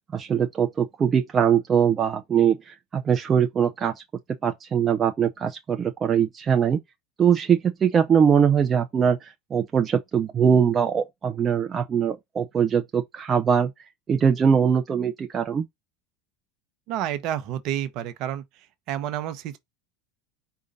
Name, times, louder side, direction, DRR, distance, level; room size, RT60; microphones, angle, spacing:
voice 1, 0.0-4.0 4.4-6.8 7.2-13.7 14.1-15.7, right 7 dB, 30° right, 0.5 m, -22 dB
voice 2, 16.9-18.4 18.9-19.6, right 11 dB, 55° right, 0.8 m, -29 dB
5.0 x 2.5 x 4.0 m
hypercardioid pair, 80°, 0 cm